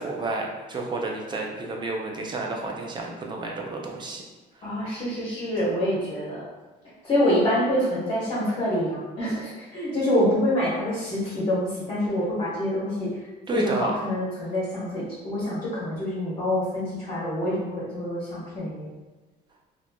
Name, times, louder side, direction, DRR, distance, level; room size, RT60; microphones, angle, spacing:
voice 1, 0.0-4.2 13.5-13.9, right 3 dB, 25° right, 0 dB, 0.5 m, -30 dB
voice 2, 4.6-6.4 7.0-13.2 13.5-18.9, left 1 dB, 35° left, -8 dB, 1.0 m, -26 dB
3.0 x 2.5 x 2.2 m, 1.2 s
cardioid pair, 110°, 17 cm